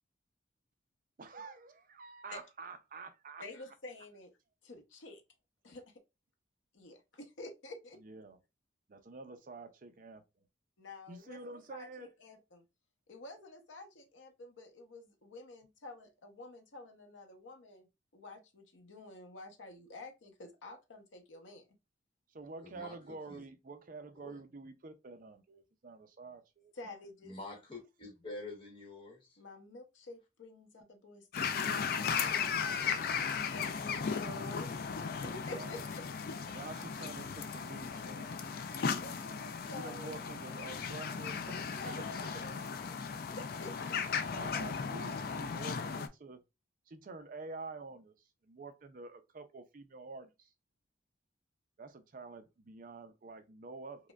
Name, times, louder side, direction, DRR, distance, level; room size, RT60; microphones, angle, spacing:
voice 1, 1.2-3.4 8.0-8.4 8.9-10.2 11.1-12.1 22.3-26.7 32.0-33.3 33.8-34.2 35.5-35.8 36.5-38.4 39.7-41.6 41.8-42.4 44.3-46.4 46.9-48.1 48.4-50.5 51.8-54.1, right 3 dB, 45° right, 0.5 m, -48 dB
voice 2, 3.4-4.3 4.6-5.2 5.6-6.0 6.7-8.0 10.8-12.6 13.1-17.9 18.1-21.6 26.7-27.3 29.4-36.0 38.9-40.3 41.4-44.2, left 2 dB, 90° left, 0.8 m, -50 dB
voice 3, 22.6-23.4 24.2-24.4 27.2-29.4 38.3-38.4, left 2 dB, 30° left, 1.0 m, -47 dB
sound 1, 31.3-46.1, left 6 dB, 50° left, 0.4 m, -36 dB
4.8 x 2.2 x 2.3 m
head